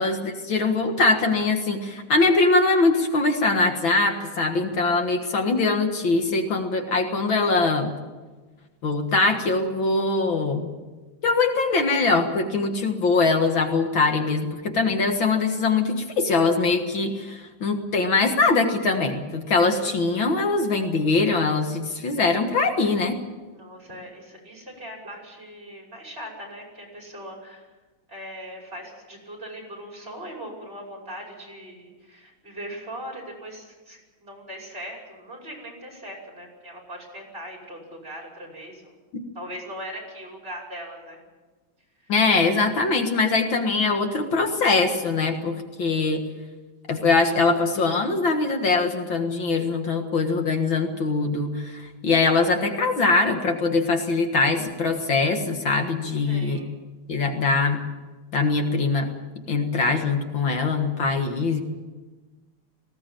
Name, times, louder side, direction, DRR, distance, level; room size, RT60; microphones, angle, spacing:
voice 1, 0.0-7.9 8.8-10.7 11.2-23.2 42.1-46.2 46.9-56.6 57.1-57.8 58.3-59.1 59.5-61.6, left 3 dB, 65° left, 4 dB, 2.4 m, -22 dB
voice 2, 23.5-27.7 28.1-38.9 39.3-41.2 42.0-42.1 56.3-56.7, equal, 25° right, 0 dB, 6.1 m, -40 dB
19.5 x 17.0 x 9.1 m, 1.3 s
omnidirectional pair, 2.3 m